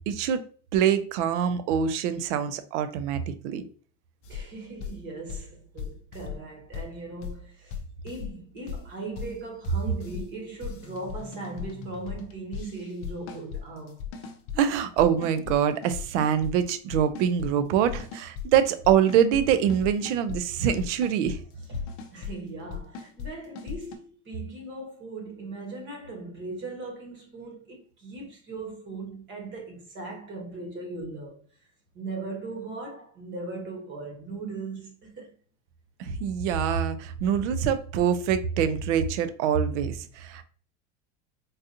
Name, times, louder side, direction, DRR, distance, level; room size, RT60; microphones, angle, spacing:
voice 1, 0.1-0.4 0.7-3.6 14.5-21.4 36.0-40.4, right 8 dB, 85° right, 0.6 m, -24 dB
sound 1, 4.2-13.6 13.9-14.6 15.0-15.6 15.8-16.5 16.9-17.5 17.9-18.5 18.8-19.4 19.7-20.4 20.8-21.4 21.6-22.3 22.7-23.3 23.6-23.9, left 7 dB, 40° left, 0.5 m, -38 dB
voice 2, 4.3-7.8 8.0-14.0 21.6-31.4 31.9-35.3, right 2 dB, 35° right, 1.2 m, -38 dB
3.9 x 2.5 x 2.7 m
supercardioid pair, 155°, 34 cm